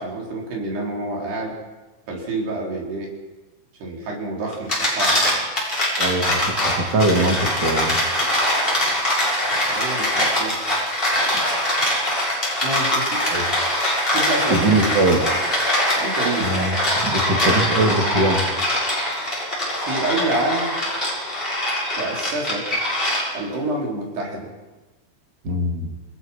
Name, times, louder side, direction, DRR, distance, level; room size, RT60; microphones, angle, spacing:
voice 1, 0.0-1.6 2.1-3.1 3.8-5.5 9.7-10.6 12.6-13.7 14.1-15.0 16.0-16.7 19.8-20.7 22.0-22.8 23.3-24.5, right 2 dB, 60° right, -1 dB, 5.9 m, -28 dB
sound 1, 4.5-23.6, left 1 dB, 10° left, 7.1 m, -22 dB
voice 2, 6.0-8.0 13.3-13.4 14.5-15.2 16.4-16.8 17.0-18.4 25.4-25.9, right 2 dB, 30° right, 2 dB, 2.5 m, -21 dB
28.5 x 21.5 x 5.8 m, 1.2 s
omnidirectional pair, 5.3 m